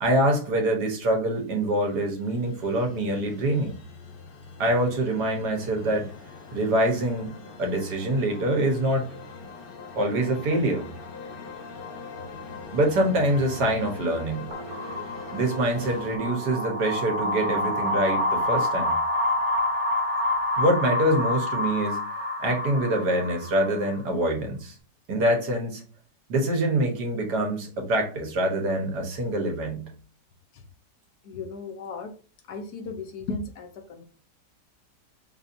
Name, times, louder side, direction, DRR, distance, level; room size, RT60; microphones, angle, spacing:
voice 1, 0.0-3.8 4.6-6.1 6.5-7.3 7.6-9.1 10.0-10.9 12.7-14.5 15.3-19.0 20.6-22.0 22.4-24.8 25.1-25.8 26.3-29.9, right 1 dB, 75° right, 2 dB, 1.6 m, -25 dB
sound 1, 1.4-16.2, left 4 dB, 55° left, 0.6 m, -42 dB
sound 2, 14.5-24.0, left 1 dB, 50° right, 1.2 m, -28 dB
voice 2, 31.2-32.1 32.5-34.1, left 3 dB, 75° left, 5 dB, 1.3 m, -36 dB
5.5 x 2.7 x 2.6 m, 0.38 s
omnidirectional pair, 1.8 m